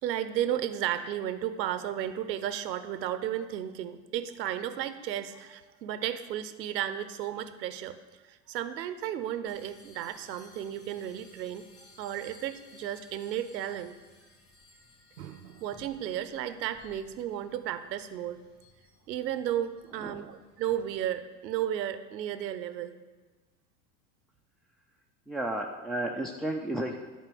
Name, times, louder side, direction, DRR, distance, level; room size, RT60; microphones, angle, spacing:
voice 1, 0.0-8.0 8.2-11.7 12.0-14.0 15.2-18.5 19.1-23.0, right 11 dB, 85° right, 12 dB, 0.8 m, -34 dB
sound 1, 9.5-21.1, left 3 dB, 80° left, 2.9 m, -59 dB
voice 2, 25.3-27.0, right 1 dB, ahead, 1 dB, 0.4 m, -33 dB
11.0 x 4.4 x 7.5 m, 1.3 s
hypercardioid pair, 90°, 49 cm